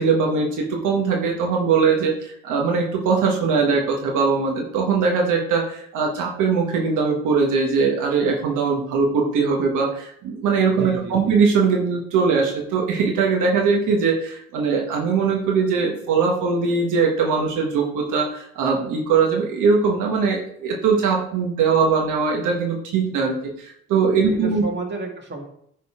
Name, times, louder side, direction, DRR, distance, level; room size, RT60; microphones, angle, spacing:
voice 1, 0.0-24.6, right 5 dB, 85° right, 0 dB, 1.4 m, -21 dB
voice 2, 10.8-11.4 24.3-25.4, right 3 dB, 35° right, 0 dB, 2.3 m, -32 dB
9.7 x 4.1 x 4.9 m, 0.68 s
cardioid pair, 90°, 30 cm